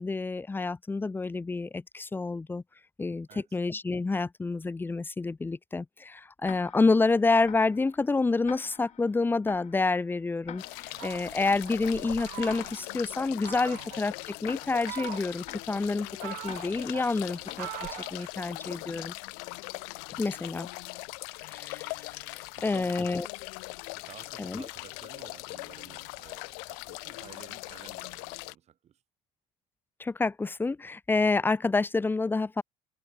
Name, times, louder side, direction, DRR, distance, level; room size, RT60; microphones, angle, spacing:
voice 1, 0.0-2.6 3.0-17.7 18.1-19.1 20.2-20.7 21.4-22.3 22.6-23.3 24.4-24.6 30.0-32.6, left 3 dB, 15° left, 0.6 m, -28 dB
Tick-tock, 6.4-18.3, left 11 dB, 50° left, 3.6 m, -50 dB
sound 1, 10.6-28.5, left 40 dB or more, 85° left, 2.5 m, -41 dB
Fowl, 10.9-12.9 13.4-14.0 14.6-15.6 16.0-18.8, right 32 dB, 85° right, 4.5 m, -43 dB
voice 2, 22.5-23.0 23.9-29.0, right 10 dB, 45° right, 5.8 m, -53 dB
cardioid pair, 110°, 15 cm